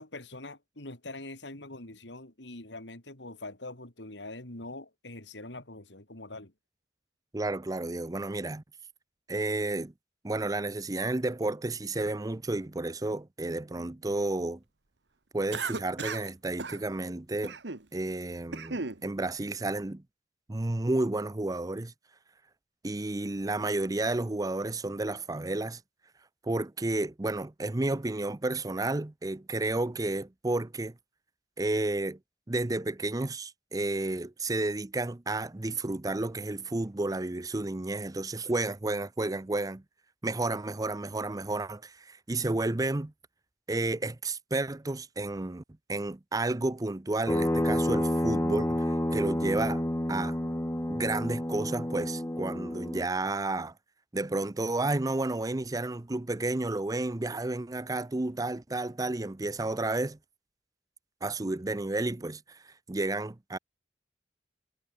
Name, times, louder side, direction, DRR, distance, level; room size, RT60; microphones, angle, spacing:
voice 1, 0.0-6.5, left 2 dB, 85° left, 4.3 m, -43 dB
voice 2, 7.3-8.6 9.3-9.9 10.2-14.6 15.3-17.6 17.9-20.0 20.5-21.9 22.8-25.8 26.4-30.9 31.6-32.2 32.5-39.8 40.2-43.1 43.7-45.6 45.9-49.8 50.1-50.4 50.9-53.7 54.1-60.2 61.2-62.6 62.9-63.6, right 2 dB, 20° right, 0.6 m, -31 dB
Cough, 15.5-16.3 16.6-16.8 17.4-17.8 18.3-19.0, right 4 dB, 80° right, 1.6 m, -35 dB
sound 1, 47.3-53.0, equal, 15° left, 1.6 m, -29 dB
head